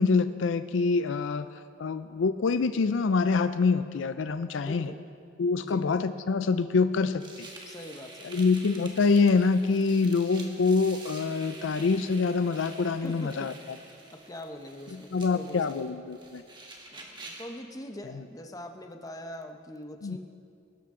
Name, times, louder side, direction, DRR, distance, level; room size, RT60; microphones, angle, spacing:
voice 1, 0.0-1.5 1.8-4.9 5.4-7.5 8.2-13.5 15.1-16.4 20.0-20.2, left 4 dB, 75° left, 12 dB, 0.4 m, -25 dB
voice 2, 4.6-5.0 5.6-5.9 7.7-8.4 13.0-13.5 14.1-16.0 16.9-20.2, equal, 20° left, 5 dB, 0.8 m, -43 dB
sound 1, 7.2-17.6, right 2 dB, 25° right, 1.5 m, -48 dB
20.5 x 12.5 x 3.8 m, 2.4 s
head